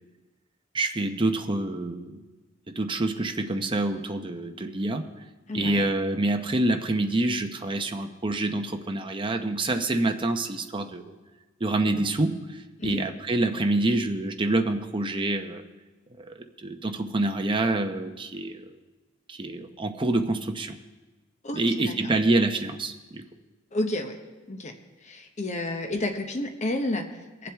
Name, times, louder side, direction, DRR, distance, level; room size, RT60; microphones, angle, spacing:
voice 1, 0.7-2.2 2.7-5.1 5.5-11.1 11.6-15.6 16.2-18.6 19.3-20.8 21.5-23.3, right 2 dB, 25° right, 5 dB, 0.8 m, -27 dB
voice 2, 5.5-5.8 11.9-12.0 12.8-13.0 21.4-21.9 23.7-24.2 24.5-24.7 25.0-27.5, left 1 dB, 35° left, 4 dB, 0.9 m, -31 dB
22.5 x 7.6 x 3.5 m, 1.2 s
head